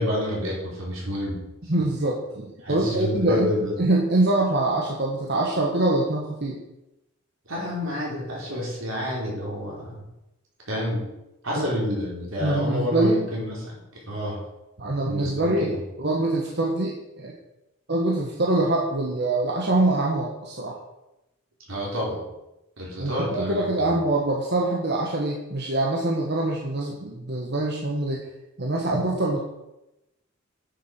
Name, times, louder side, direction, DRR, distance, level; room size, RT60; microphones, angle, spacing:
voice 1, 0.0-1.4 2.6-3.7 7.5-10.0 10.7-11.0 11.4-14.4 15.1-15.8 21.7-22.2 22.8-23.9, left 1 dB, 85° right, -4 dB, 4.6 m, -29 dB
voice 2, 1.7-6.6 11.5-11.6 12.4-13.3 14.8-17.3 17.9-20.8 23.0-28.3 28.6-29.4, right 2 dB, 55° right, -2 dB, 1.5 m, -24 dB
9.6 x 7.3 x 6.1 m, 0.94 s
head